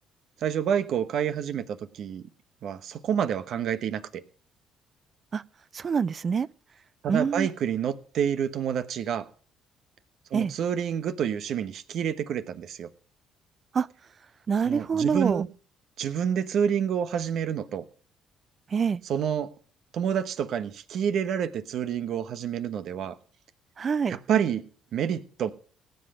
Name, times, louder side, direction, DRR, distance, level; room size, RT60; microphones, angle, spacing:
voice 1, 0.4-2.2 2.6-4.0 7.0-9.3 10.3-12.9 14.6-15.5 16.0-17.8 19.1-19.5 19.9-23.1 24.1-24.6 24.9-25.5, right 8 dB, 65° right, 12 dB, 1.1 m, -28 dB
voice 2, 5.7-6.5 7.1-7.5 10.3-10.5 13.7-13.9 14.5-15.4 18.7-19.0 23.8-24.2, right 6 dB, 45° right, 20 dB, 0.5 m, -25 dB
17.5 x 8.1 x 5.0 m, 0.43 s
hypercardioid pair, 55°, 0 cm